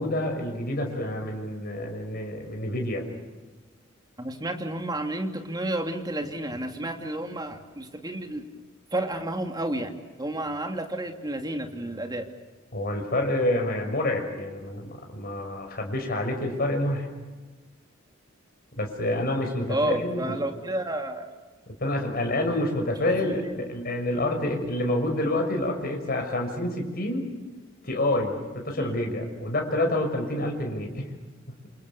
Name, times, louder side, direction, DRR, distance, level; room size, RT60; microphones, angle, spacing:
voice 1, 0.0-3.0 12.7-17.1 18.8-20.4 21.8-27.3 27.8-31.1, left 1 dB, 50° left, 3 dB, 6.0 m, -28 dB
voice 2, 4.2-8.5 8.9-12.3 19.7-21.2 23.3-23.6 28.8-28.9, right 1 dB, 20° right, 4 dB, 2.7 m, -31 dB
28.0 x 28.0 x 7.0 m, 1.3 s
head